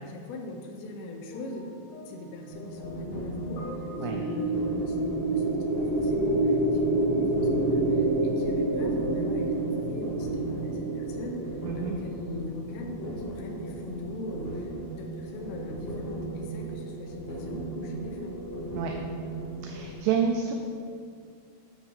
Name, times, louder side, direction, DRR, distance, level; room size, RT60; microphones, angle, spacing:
voice 1, 0.0-1.7 2.1-3.7 4.0-18.4, left 2 dB, 85° left, 3 dB, 3.5 m, -40 dB
sound 1, 1.3-6.4 7.3-7.5, left 1 dB, 65° left, 2.1 m, -48 dB
sound 2, 2.5-20.0, right 1 dB, 40° left, 1.3 m, -37 dB
sound 3, 3.7-12.2, right 2 dB, 65° right, 3.3 m, -27 dB
voice 2, 19.6-20.5, right 7 dB, 80° right, 2 dB, 2.9 m, -28 dB
9.9 x 7.0 x 3.6 m, 2.3 s
omnidirectional pair, 5.7 m